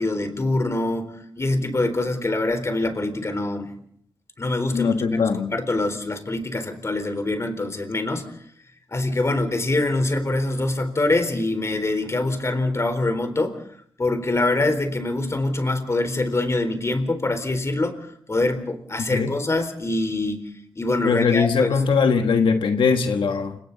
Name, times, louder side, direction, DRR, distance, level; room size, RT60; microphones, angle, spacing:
voice 1, 0.0-3.7 4.4-5.2 5.5-8.3 8.9-13.6 14.0-18.0 18.3-21.8, left 2 dB, 35° left, 8 dB, 4.1 m, -24 dB
voice 2, 4.7-5.5 19.1-19.3 21.0-23.6, left 5 dB, 90° left, 6 dB, 1.4 m, -21 dB
29.5 x 27.5 x 4.1 m, 0.64 s
wide cardioid pair, 90°, 8 cm